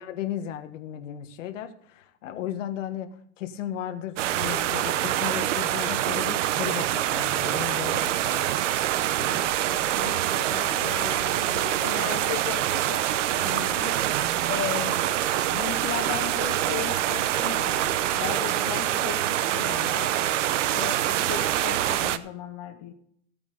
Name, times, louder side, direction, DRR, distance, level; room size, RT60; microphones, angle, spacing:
voice 1, 0.0-8.5 20.8-21.1, left 11 dB, 60° left, 8 dB, 1.6 m, -35 dB
sound 1, 4.2-22.2, right 12 dB, 60° right, 0.9 m, -25 dB
voice 2, 9.1-14.0 14.5-15.0 15.5-20.2 20.7-22.9, left 10 dB, 30° left, 5 dB, 0.9 m, -36 dB
16.5 x 8.7 x 4.0 m, 0.69 s
supercardioid pair, 155°, 42 cm